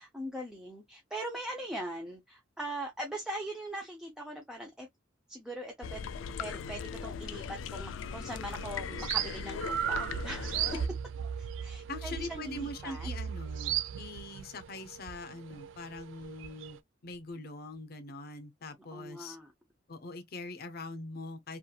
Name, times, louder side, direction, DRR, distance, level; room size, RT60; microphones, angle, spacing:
voice 1, 0.0-4.9 5.3-6.0 6.4-10.8 11.4-13.1 18.9-19.5, right 1 dB, 5° right, 0.5 m, -41 dB
sound 1, 5.8-10.9, left 6 dB, 85° left, 0.3 m, -39 dB
sound 2, 8.5-16.8, right 9 dB, 75° right, 0.3 m, -37 dB
voice 2, 11.9-19.4 19.9-21.6, left 2 dB, 55° left, 0.6 m, -42 dB
2.9 x 2.5 x 2.3 m
head